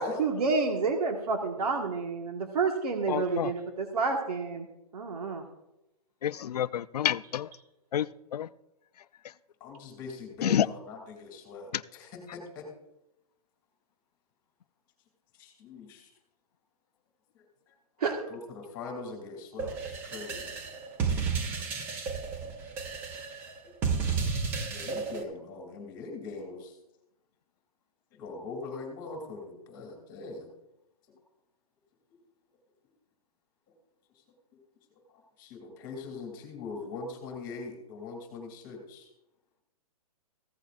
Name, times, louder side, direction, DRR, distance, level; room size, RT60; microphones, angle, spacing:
voice 1, 0.0-4.7 4.9-5.4 18.0-18.1, right 4 dB, 80° right, 2 dB, 1.7 m, -29 dB
voice 2, 3.1-3.5 6.2-7.5 7.9-8.5 10.4-10.7 11.7-11.8, left 10 dB, 90° left, 16 dB, 0.5 m, -29 dB
voice 3, 9.6-12.6 15.4-16.1 17.7-17.8 18.3-20.6 24.7-26.8 28.1-30.5 35.1-39.1, left 3 dB, 15° left, 0 dB, 2.6 m, -42 dB
sound 1, 19.6-25.2, right 5 dB, 10° right, 0.4 m, -32 dB
15.5 x 14.5 x 2.5 m, 0.89 s
hypercardioid pair, 170°, 20 cm